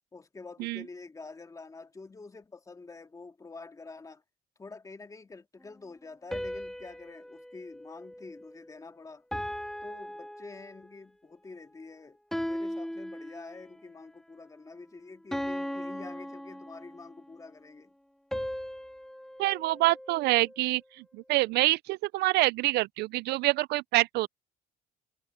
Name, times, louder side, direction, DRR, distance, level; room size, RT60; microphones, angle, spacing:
voice 1, 0.1-4.2 4.6-9.2 9.8-17.9, left 3 dB, 20° left, 2.1 m, -47 dB
sound 1, 6.3-8.8 9.3-11.1 12.3-13.8 15.3-17.2 18.3-20.7, equal, ahead, 1.7 m, -38 dB
voice 2, 19.4-20.8 21.1-24.3, right 19 dB, 80° right, 0.4 m, -26 dB
cardioid pair, 110°, 17 cm